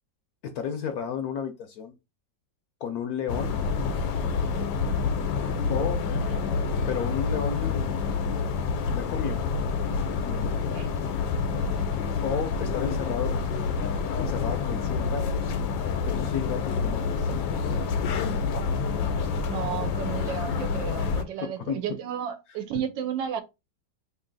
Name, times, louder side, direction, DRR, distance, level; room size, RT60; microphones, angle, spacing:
voice 1, 0.4-1.9 2.8-3.6 5.7-6.0 6.8-8.3 8.9-9.5 10.0-10.6 12.2-13.4 14.2-15.5 16.0-17.8 21.4-21.8, left 7 dB, 70° left, 0.9 m, -33 dB
sound 1, 3.3-21.2, left 5 dB, 90° left, 1.3 m, -28 dB
voice 2, 6.1-6.5 10.7-10.9 11.5-11.9 19.4-23.4, right 9 dB, 80° right, 1.3 m, -33 dB
3.1 x 2.7 x 3.9 m
omnidirectional pair, 2.0 m